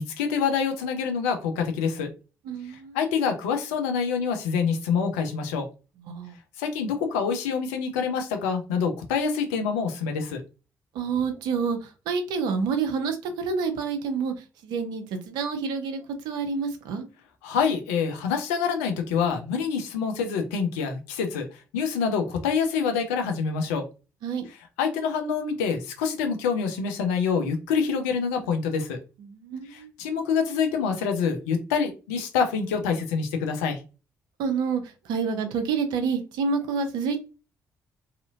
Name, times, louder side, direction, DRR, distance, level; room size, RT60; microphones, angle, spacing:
voice 1, 0.0-2.1 2.7-5.7 6.6-10.4 17.4-23.8 24.8-29.0 29.7-33.8, left 6 dB, 75° left, 0.5 m, -26 dB
voice 2, 2.4-3.0 6.0-6.4 10.9-14.3 14.6-17.0 24.2-24.5 29.3-29.9 34.4-37.2, right 5 dB, 65° right, 0.6 m, -28 dB
2.8 x 2.5 x 2.5 m
figure-of-eight pair, 40°, 8 cm